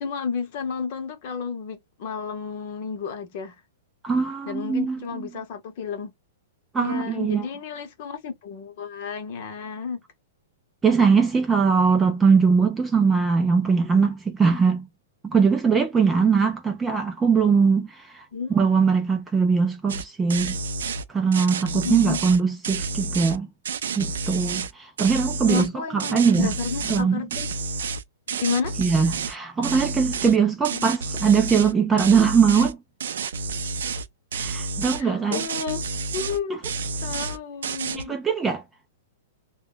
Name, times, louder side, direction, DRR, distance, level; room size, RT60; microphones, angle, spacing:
voice 1, 0.0-3.6 4.5-6.1 6.8-10.0 18.3-18.6 21.7-22.2 25.5-27.5 28.3-28.8 30.7-30.8 35.0-35.9 36.1-36.6 37.0-38.2, left 6 dB, 40° left, 0.8 m, -31 dB
voice 2, 4.0-5.3 6.7-7.5 10.8-14.9 15.2-18.2 18.5-20.6 21.1-23.5 23.9-26.5 26.9-27.3 28.8-32.8 34.4-35.4 37.9-38.6, right 5 dB, 10° right, 0.4 m, -21 dB
sound 1, 19.9-20.0 20.3-21.0 21.3-23.4 23.7-24.7 25.0-25.7 26.0-27.0 27.3-29.4 29.6-30.4 30.6-31.7 32.0-32.7 33.0-34.1 34.3-35.0 35.3-36.4 36.6-37.4 37.6-38.0, right 4 dB, 75° right, 0.4 m, -30 dB
2.2 x 2.1 x 3.7 m
hypercardioid pair, 170°, 0 cm